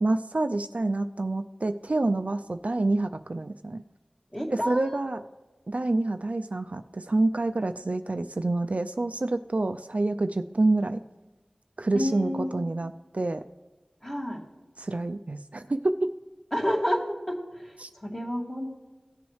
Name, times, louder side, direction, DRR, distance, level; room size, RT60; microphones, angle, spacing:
voice 1, 0.0-3.8 4.5-5.2 5.7-11.0 11.8-13.4 14.8-16.1 17.8-17.9, right 2 dB, 60° right, 8 dB, 0.4 m, -27 dB
voice 2, 4.3-5.2 11.9-12.6 14.0-14.4 16.5-17.7 18.0-18.8, equal, 20° left, -1 dB, 2.2 m, -30 dB
16.5 x 7.0 x 3.2 m, 1.2 s
wide cardioid pair, 50°, 3 cm